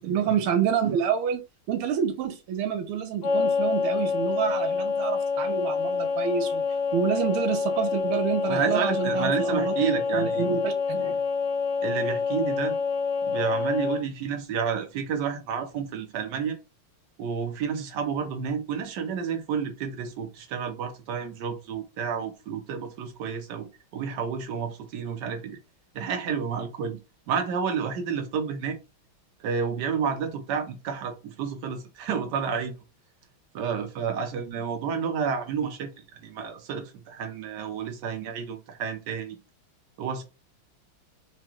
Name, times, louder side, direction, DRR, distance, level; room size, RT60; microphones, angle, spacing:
voice 1, 0.0-1.4 1.7-6.6 6.9-9.7 10.1-11.2, right 8 dB, 85° right, 1.6 m, -28 dB
sound 1, 3.2-14.0, left 5 dB, 85° left, 1.9 m, -27 dB
voice 2, 8.5-10.4 11.8-12.8 13.3-16.6 17.2-23.7 23.9-25.6 25.9-27.0 27.3-28.8 29.4-32.8 33.5-39.4 40.0-40.2, right 6 dB, 65° right, 1.3 m, -30 dB
4.9 x 2.2 x 3.0 m
omnidirectional pair, 2.3 m